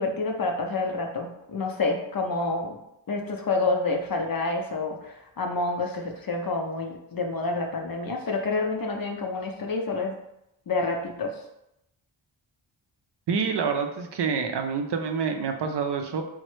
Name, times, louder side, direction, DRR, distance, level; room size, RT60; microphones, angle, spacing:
voice 1, 0.0-2.8 3.1-10.1 10.7-11.3, left 3 dB, 45° left, 2 dB, 0.5 m, -28 dB
voice 2, 13.3-16.2, right 5 dB, 60° right, 5 dB, 0.5 m, -27 dB
3.0 x 2.1 x 3.0 m, 0.84 s
cardioid pair, 50°, 48 cm